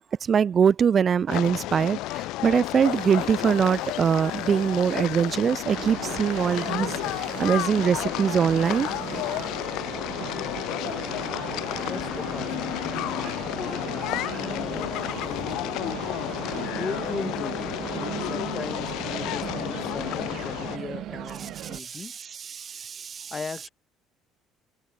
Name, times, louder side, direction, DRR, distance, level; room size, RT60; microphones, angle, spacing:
voice 1, 0.2-6.9 7.4-8.9 21.7-23.3, right 7 dB, 45° right, 0.6 m, -23 dB
sound 1, 1.3-20.8, left 18 dB, 75° left, 1.6 m, -31 dB
sound 2, 2.8-15.4, right 25 dB, 80° right, 7.8 m, -51 dB
sound 3, 5.7-21.8, right 13 dB, 65° right, 6.9 m, -37 dB
voice 2, 11.9-14.9 15.2-15.8 16.1-16.2 16.7-17.8 18.2-22.1 23.3-23.7, left 5 dB, 30° left, 3.2 m, -38 dB
supercardioid pair, 80°, 0 cm